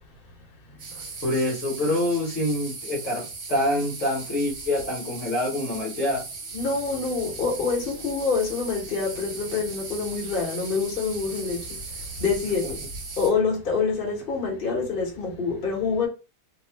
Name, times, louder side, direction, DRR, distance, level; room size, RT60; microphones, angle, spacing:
voice 1, 0.6-1.1 6.5-12.8 13.2-16.1, left 5 dB, 40° left, 1.2 m, -27 dB
sound 1, 0.8-13.3, right 4 dB, 55° right, 1.1 m, -38 dB
voice 2, 1.2-6.2 12.6-12.7, left 1 dB, 55° left, 1.4 m, -26 dB
2.8 x 2.4 x 3.3 m
omnidirectional pair, 1.7 m